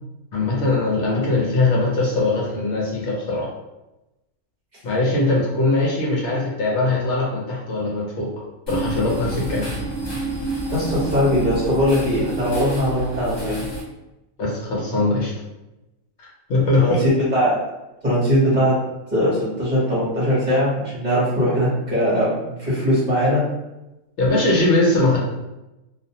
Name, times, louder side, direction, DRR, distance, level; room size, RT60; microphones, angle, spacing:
voice 1, 0.3-3.5 4.8-8.3 8.7-9.7 14.4-15.3 16.2-17.0 24.2-25.2, left 2 dB, 65° left, -4 dB, 0.9 m, -21 dB
sound 1, 8.7-13.8, right 2 dB, 30° left, 0.6 m, -28 dB
voice 2, 10.7-13.6 16.7-17.6 18.0-18.7 19.1-23.4, equal, 35° right, -9 dB, 1.0 m, -20 dB
2.4 x 2.1 x 2.6 m, 0.98 s
omnidirectional pair, 1.3 m